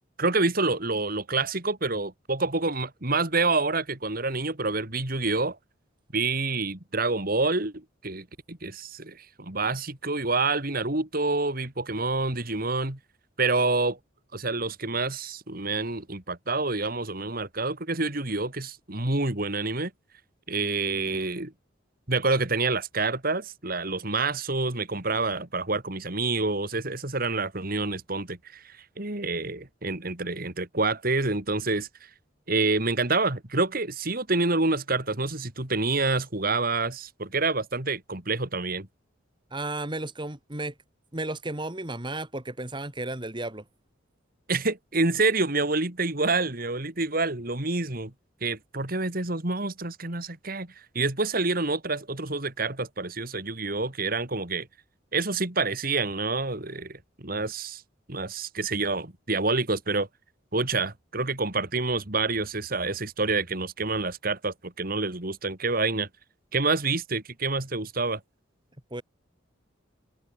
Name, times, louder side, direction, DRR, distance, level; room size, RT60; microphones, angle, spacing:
voice 1, 0.2-5.6 6.1-13.0 13.4-14.0 14.3-19.9 20.5-21.5 22.1-32.1 32.5-38.9 44.5-48.1 48.4-54.7 55.1-57.8 58.1-60.1 60.5-66.1 66.5-68.2, right 3 dB, 50° right, 2.9 m, -27 dB
voice 2, 39.5-40.7 41.1-43.6 68.9-69.0, right 2 dB, 25° right, 2.5 m, -33 dB
head